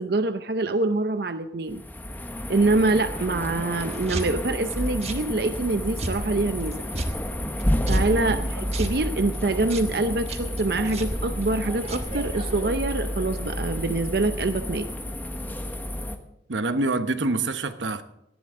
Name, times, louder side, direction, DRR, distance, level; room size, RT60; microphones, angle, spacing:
voice 1, 0.0-1.8 2.5-6.7 7.9-14.9, right 2 dB, 60° right, 0.7 m, -25 dB
sound 1, 1.7-16.2, left 1 dB, 10° left, 1.1 m, -30 dB
sound 2, 3.8-12.7, right 1 dB, 35° right, 1.3 m, -36 dB
voice 2, 16.5-18.0, right 2 dB, 90° right, 1.1 m, -26 dB
18.5 x 13.5 x 3.7 m
head